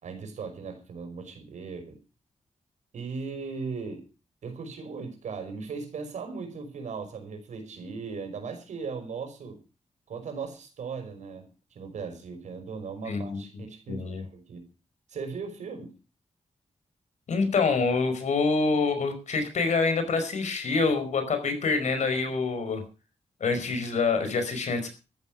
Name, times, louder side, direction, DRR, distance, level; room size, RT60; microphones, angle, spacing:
voice 1, 0.0-2.0 2.9-4.0 4.4-9.6 10.1-14.7 15.1-15.9, right 5 dB, 90° right, 7 dB, 5.5 m, -38 dB
voice 2, 13.0-13.6 13.9-14.2 17.3-22.8 23.4-24.9, left 4 dB, 80° left, 9 dB, 4.8 m, -26 dB
13.5 x 12.5 x 6.2 m, 0.33 s
cardioid pair, 90°, 12 cm